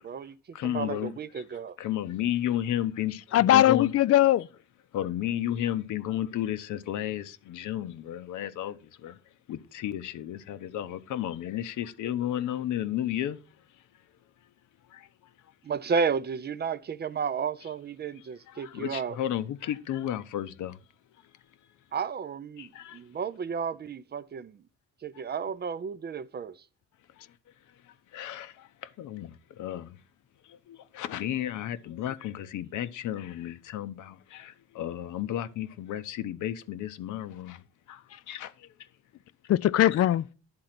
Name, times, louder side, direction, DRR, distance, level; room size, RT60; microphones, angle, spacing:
voice 1, 0.0-1.8 15.6-19.2 21.9-24.6 25.0-26.6, right 6 dB, 35° right, 0.4 m, -32 dB
voice 2, 0.5-1.4 1.8-3.9 4.9-9.2 9.5-13.4 14.9-15.1 18.2-20.8 22.6-23.0 28.1-30.0 30.4-37.6 37.9-38.7, left 11 dB, 80° left, 0.8 m, -33 dB
voice 3, 3.3-4.5 38.1-38.2 39.5-40.3, left 13 dB, 50° left, 0.4 m, -21 dB
10.5 x 3.8 x 5.9 m
cardioid pair, 90°, 30 cm